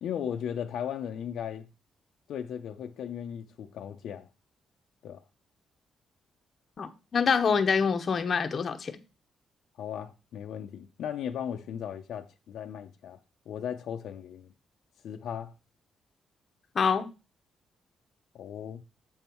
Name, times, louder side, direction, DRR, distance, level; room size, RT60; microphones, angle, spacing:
voice 1, 0.0-1.7 2.3-4.3 5.0-5.2 9.8-13.2 13.5-14.5 15.0-15.5 18.3-18.8, left 9 dB, 70° left, 0.6 m, -36 dB
voice 2, 6.8-8.9 16.7-17.1, left 6 dB, 35° left, 0.8 m, -26 dB
7.1 x 5.4 x 4.4 m
cardioid pair, 160°, 0 cm